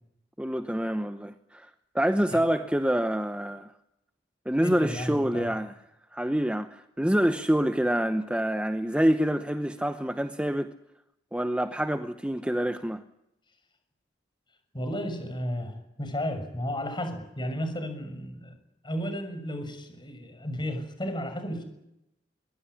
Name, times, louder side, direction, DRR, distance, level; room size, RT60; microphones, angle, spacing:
voice 1, 0.4-1.7 1.9-3.7 4.5-5.7 6.1-10.8 11.3-13.0, equal, 5° right, 0.9 m, -26 dB
voice 2, 4.6-5.5 14.7-18.5 18.8-21.7, equal, 25° left, 6.7 m, -33 dB
23.0 x 22.5 x 9.9 m
head